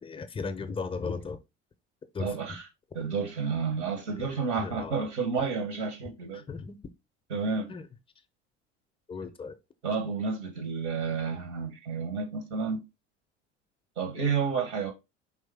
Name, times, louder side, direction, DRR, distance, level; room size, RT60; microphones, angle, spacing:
voice 1, 0.0-1.4 2.1-2.6 4.6-5.1 6.3-6.8 7.7-7.9 9.1-9.6, left 4 dB, 15° left, 0.6 m, -36 dB
voice 2, 2.2-2.7 2.9-6.4 7.3-7.7 9.8-12.8 14.0-14.9, right 5 dB, 75° right, 1.1 m, -30 dB
4.8 x 3.3 x 3.4 m
figure-of-eight pair, 65°, 36 cm